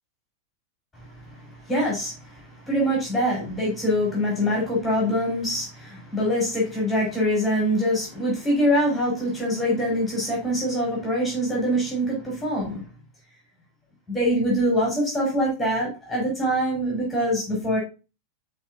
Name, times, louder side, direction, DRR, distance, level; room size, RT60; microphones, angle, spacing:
voice 1, 1.7-2.1 2.6-12.8 14.1-17.8, equal, 10° left, -3 dB, 5.0 m, -24 dB
13.0 x 4.5 x 2.6 m, 0.30 s
figure-of-eight pair, 90°, 0 cm